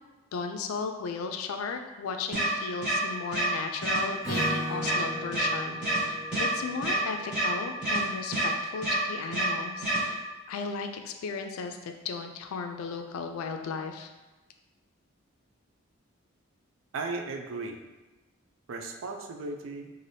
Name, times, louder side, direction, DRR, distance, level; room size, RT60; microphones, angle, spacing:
voice 1, 0.3-14.1, left 5 dB, 90° left, 5 dB, 0.3 m, -36 dB
sound 1, 2.3-2.4 2.8-2.9 3.3-3.4 3.8-4.0 4.3-4.4 4.8-4.9 5.3-5.4 5.8-6.0 6.3-6.4 6.8-6.9 7.3-7.4 7.8-8.0 8.3-8.4 8.8-8.9 9.3-9.4 9.8-10.0, right 2 dB, 5° right, 1.4 m, -27 dB
Acoustic guitar / Strum, 4.2-7.6, equal, 40° right, 1.1 m, -37 dB
voice 2, 16.9-17.8 18.7-19.9, right 3 dB, 70° right, 4 dB, 0.4 m, -36 dB
3.2 x 2.5 x 2.6 m, 1.1 s
head